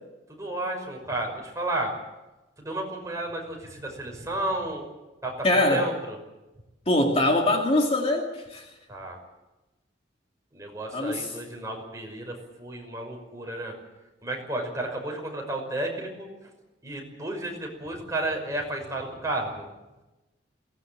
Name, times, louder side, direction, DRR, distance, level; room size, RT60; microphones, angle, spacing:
voice 1, 0.3-1.9 2.6-4.9 5.2-6.2 8.9-9.2 10.5-13.7 14.2-16.3 16.8-19.7, right 1 dB, 15° right, 1 dB, 5.7 m, -32 dB
voice 2, 5.4-5.9 6.9-8.7 10.9-11.3, left 1 dB, 30° left, 2 dB, 2.3 m, -23 dB
22.5 x 18.5 x 8.8 m, 1.0 s
head